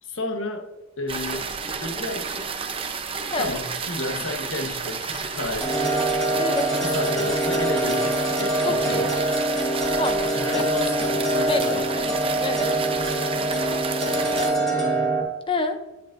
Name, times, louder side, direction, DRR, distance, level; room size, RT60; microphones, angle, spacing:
voice 1, 0.0-0.7 1.0-2.5 3.4-6.0 6.7-9.2 10.3-11.9 14.0-15.2, left 2 dB, 85° left, 1.3 m, -33 dB
sound 1, 1.1-14.5, right 5 dB, 30° right, 0.8 m, -31 dB
sound 2, 5.6-15.2, right 1 dB, 5° left, 2.8 m, -24 dB
voice 2, 6.4-6.7 8.6-9.1 10.0-10.6 11.4-12.0 12.3-12.7 15.5-15.8, left 2 dB, 25° left, 0.7 m, -28 dB
10.5 x 8.5 x 2.6 m
head